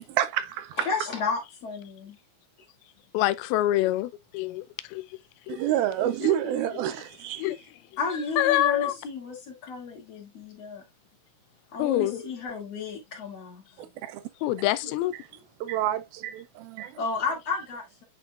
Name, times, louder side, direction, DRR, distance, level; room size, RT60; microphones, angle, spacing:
voice 1, 0.0-0.9 5.5-7.5 13.8-14.2 15.6-17.0, right 12 dB, 90° right, 2.5 m, -28 dB
voice 2, 0.8-2.2 8.0-10.8 11.7-13.6 14.8-14.9 17.0-18.0, left 4 dB, 45° left, 3.0 m, -32 dB
voice 3, 3.1-5.0 5.5-5.6 6.2-6.4 7.4-7.6 8.4-8.9 11.8-12.2 14.4-15.1, left 15 dB, 85° left, 2.5 m, -25 dB
9.7 x 4.1 x 2.4 m
omnidirectional pair, 4.4 m